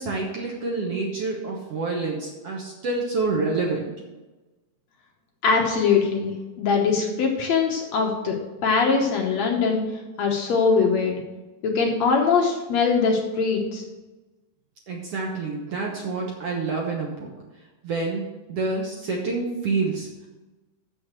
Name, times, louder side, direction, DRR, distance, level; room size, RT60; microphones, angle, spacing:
voice 1, 0.0-3.9 14.9-17.3 17.8-20.1, right 3 dB, 60° right, -1 dB, 1.7 m, -27 dB
voice 2, 5.4-6.3 6.6-8.4 8.6-9.8 10.2-11.2 11.6-13.8, left 5 dB, 65° left, 1 dB, 1.9 m, -22 dB
6.9 x 6.5 x 7.4 m, 1.2 s
omnidirectional pair, 3.9 m